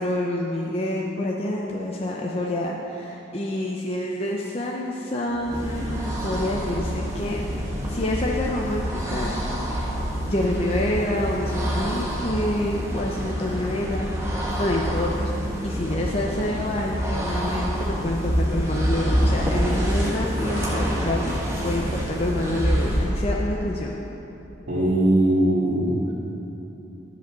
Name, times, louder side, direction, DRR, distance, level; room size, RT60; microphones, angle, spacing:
voice 1, 0.0-7.4 7.9-9.3 9.7-9.9 10.3-15.3 15.6-21.3 21.6-24.0, left 1 dB, 30° left, -2 dB, 0.6 m, -27 dB
sound 1, 5.3-23.2, equal, 15° right, 1.2 m, -27 dB
voice 2, 24.7-26.1, right 1 dB, 85° right, -11 dB, 2.4 m, -20 dB
11.0 x 5.2 x 6.8 m, 3.0 s
head